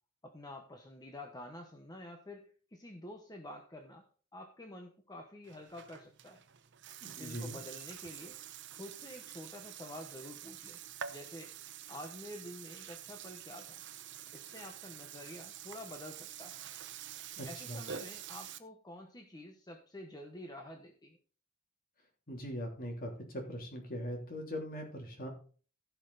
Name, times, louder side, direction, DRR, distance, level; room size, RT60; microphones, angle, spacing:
voice 1, 0.2-4.1 4.3-6.4 7.2-8.4 8.7-10.8 11.1-11.5 11.9-13.8 14.3-16.6 17.4-21.2, left 1 dB, 20° left, 3 dB, 1.1 m, -48 dB
Burping eructation, 5.4-18.6, right 9 dB, 60° right, 0.9 m, -47 dB
voice 2, 7.0-7.6 17.4-17.9 22.3-25.3, equal, 45° left, 2 dB, 3.2 m, -41 dB
16.0 x 5.8 x 4.0 m, 0.40 s
head